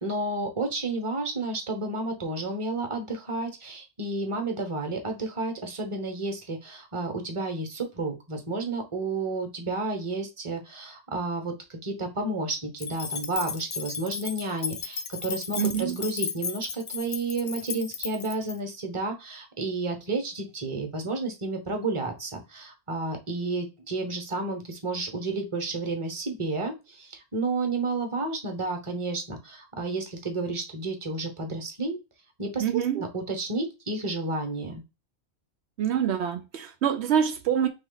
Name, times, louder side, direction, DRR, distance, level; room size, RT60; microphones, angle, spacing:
voice 1, 0.0-32.0 32.4-34.8, right 2 dB, 30° right, 1.0 m, -31 dB
sound 1, 12.8-18.5, left 6 dB, 55° left, 0.3 m, -35 dB
voice 2, 15.6-16.0 32.6-33.0 35.8-37.7, right 8 dB, 75° right, 0.8 m, -26 dB
4.4 x 3.1 x 3.8 m
omnidirectional pair, 1.2 m